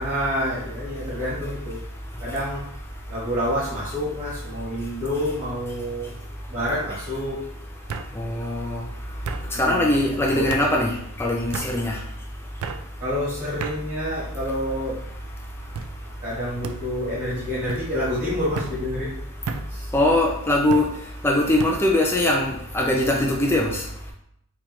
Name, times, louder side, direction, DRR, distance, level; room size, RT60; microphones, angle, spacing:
voice 1, 0.0-1.8 2.2-2.6 3.1-6.1 6.5-7.5 9.5-10.0 10.3-10.5 13.0-15.0 16.2-19.1 19.7-19.9, equal, 35° right, -8 dB, 1.2 m, -28 dB
sound 1, 4.4-4.8 5.2-5.8 6.8-6.9 7.9-8.1 9.2-9.4 10.5-10.7 11.5-11.7 12.6-12.8 13.6-13.8 14.5-15.0 15.7-15.9 16.6-16.8 17.7-17.9 18.5-18.8 19.5-19.7 20.7-20.9 21.6-21.8, right 5 dB, 70° right, 0.3 m, -32 dB
voice 2, 8.2-8.8 9.6-12.0 19.9-20.9 21.2-23.8, left 1 dB, 10° left, -1 dB, 0.3 m, -21 dB
4.5 x 2.2 x 2.9 m, 0.74 s
head